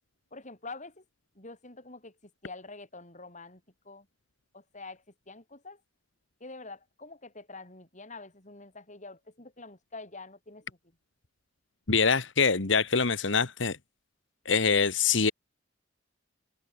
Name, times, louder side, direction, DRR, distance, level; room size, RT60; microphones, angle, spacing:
voice 1, 0.3-1.0 1.3-4.1 4.5-5.8 6.4-10.8, left 3 dB, 40° left, 7.7 m, -46 dB
voice 2, 11.9-13.8 14.4-15.3, left 5 dB, 75° left, 1.6 m, -24 dB
head